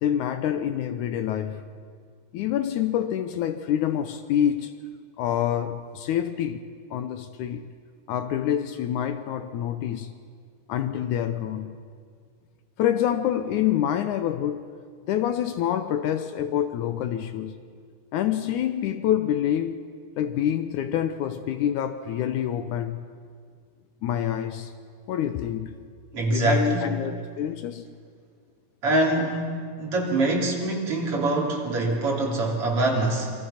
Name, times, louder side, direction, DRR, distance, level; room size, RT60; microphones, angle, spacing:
voice 1, 0.0-1.6 2.3-4.7 5.2-6.6 6.9-7.7 8.1-10.1 10.7-11.7 12.8-14.7 15.1-17.6 18.1-19.8 20.2-23.0 24.0-24.7 25.1-25.7 26.3-27.8, left 10 dB, 75° left, 2.0 m, -26 dB
voice 2, 26.1-26.9 28.8-29.4 29.8-33.3, right 2 dB, 45° right, 4.0 m, -24 dB
27.5 x 24.0 x 5.8 m
omnidirectional pair, 3.8 m